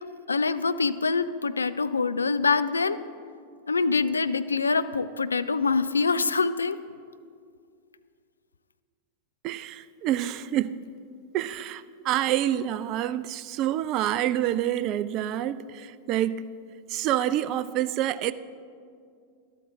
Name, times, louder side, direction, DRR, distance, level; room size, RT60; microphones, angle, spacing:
voice 1, 0.3-3.0 3.7-6.8, left 4 dB, 75° left, 13 dB, 0.4 m, -25 dB
voice 2, 9.4-10.8 11.3-16.5 16.9-18.3, right 12 dB, 40° right, 15 dB, 0.4 m, -27 dB
12.5 x 12.0 x 3.6 m, 2.3 s
figure-of-eight pair, 90°, 0 cm